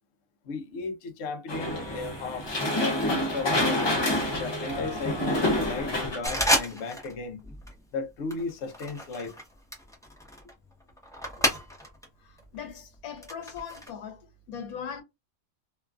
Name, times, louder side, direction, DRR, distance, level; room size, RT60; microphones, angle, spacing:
voice 1, 0.5-2.5 2.8-3.9 4.4-7.4 7.9-9.3, left 3 dB, 60° left, 0.8 m, -35 dB
sound 1, 1.5-6.2, left 1 dB, 45° left, 0.3 m, -27 dB
sound 2, 6.2-7.2 7.4-7.8 8.3-12.1 12.4-13.9, equal, 5° left, 0.6 m, -31 dB
voice 2, 12.2-15.0, left 7 dB, 85° left, 1.2 m, -40 dB
3.0 x 2.3 x 2.3 m
omnidirectional pair, 1.5 m